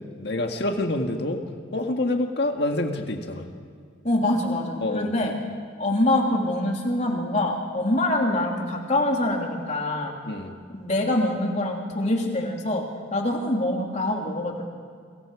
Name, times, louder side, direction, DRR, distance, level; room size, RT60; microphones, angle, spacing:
voice 1, 0.0-1.4 1.7-3.5 4.8-5.1 10.2-10.6, left 2 dB, 55° left, 3 dB, 1.8 m, -27 dB
voice 2, 4.0-5.3 5.8-10.1 10.7-12.8 13.1-14.6, left 1 dB, 35° left, 0 dB, 3.2 m, -24 dB
29.5 x 24.5 x 5.0 m, 2.1 s
head